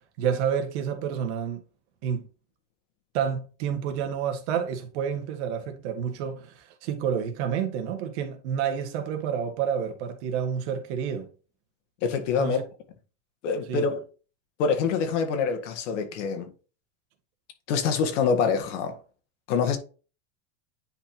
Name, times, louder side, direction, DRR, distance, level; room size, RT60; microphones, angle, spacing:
voice 1, 0.2-1.6 2.0-2.3 3.1-11.3 12.4-12.6 13.7-13.9, right 8 dB, 70° right, 1.8 m, -29 dB
voice 2, 12.0-12.6 13.4-14.0 14.6-16.5 17.7-19.0 19.5-19.8, left 6 dB, 85° left, 2.0 m, -25 dB
10.0 x 4.3 x 2.9 m
supercardioid pair, 135°, 36 cm